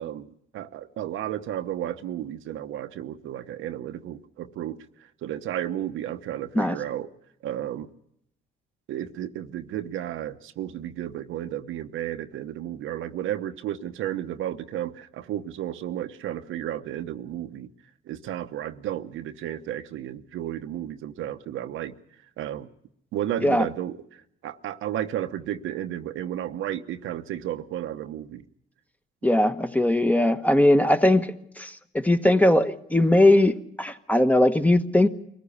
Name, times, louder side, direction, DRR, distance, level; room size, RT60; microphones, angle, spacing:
voice 1, 0.0-4.8 5.2-7.1 7.4-7.9 8.9-17.7 18.1-21.9 22.4-22.7 23.1-24.0 24.4-28.4, right 11 dB, 85° right, 9 dB, 0.9 m, -33 dB
voice 2, 29.2-31.3 31.6-35.1, left 1 dB, 5° left, 9 dB, 1.2 m, -20 dB
23.0 x 14.5 x 8.6 m, 0.75 s
cardioid pair, 90°, 20 cm